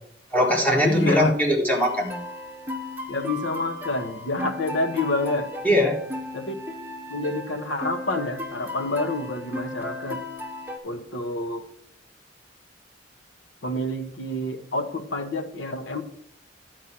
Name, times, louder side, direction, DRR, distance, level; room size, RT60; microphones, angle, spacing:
voice 1, 0.3-2.2 5.6-6.0, equal, 10° left, -1 dB, 1.6 m, -21 dB
voice 2, 0.8-1.3 3.1-5.5 6.3-6.5 7.1-10.2 10.8-11.7 13.6-16.0, left 2 dB, 85° left, 7 dB, 1.0 m, -28 dB
sound 1, 1.7-10.8, left 1 dB, 10° right, 0.9 m, -36 dB
11.0 x 4.6 x 5.8 m, 0.72 s
head